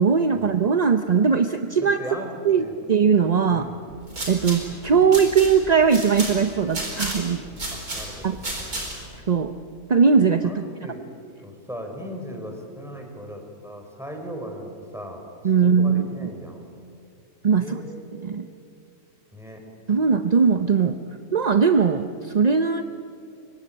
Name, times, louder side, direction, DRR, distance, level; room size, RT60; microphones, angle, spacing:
voice 1, 0.0-2.0 2.4-3.7 4.3-7.5 8.2-8.4 9.1-9.5 9.9-10.6 15.4-16.3 17.4-17.8 18.1-18.5 19.9-21.0 21.3-22.8, right 6 dB, 40° right, 8 dB, 0.6 m, -20 dB
voice 2, 1.8-2.7 3.5-3.8 7.7-8.6 10.4-11.0 11.4-15.2 15.5-16.7 17.6-18.4 19.3-19.6, equal, ahead, 2 dB, 4.4 m, -38 dB
sound 1, 3.9-9.2, right 1 dB, 85° right, 5.0 m, -33 dB
25.0 x 23.0 x 8.7 m, 2.5 s
omnidirectional pair, 1.5 m